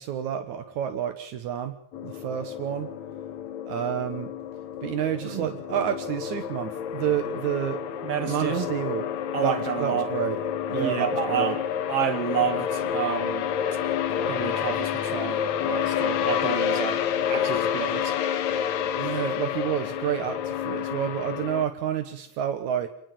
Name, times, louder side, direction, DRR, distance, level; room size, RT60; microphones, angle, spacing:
voice 1, 0.0-1.8 2.0-2.9 3.7-4.3 4.8-7.8 8.3-9.1 9.4-10.4 10.7-11.6 19.0-22.9, right 9 dB, 75° right, 2.7 m, -29 dB
sound 1, 1.9-21.7, left 9 dB, 75° left, 2.5 m, -29 dB
voice 2, 8.0-8.7 9.3-10.1 10.7-11.6 11.9-13.5 14.3-17.0 17.3-18.1, right 8 dB, 55° right, 3.2 m, -29 dB
26.5 x 19.5 x 7.7 m
omnidirectional pair, 3.4 m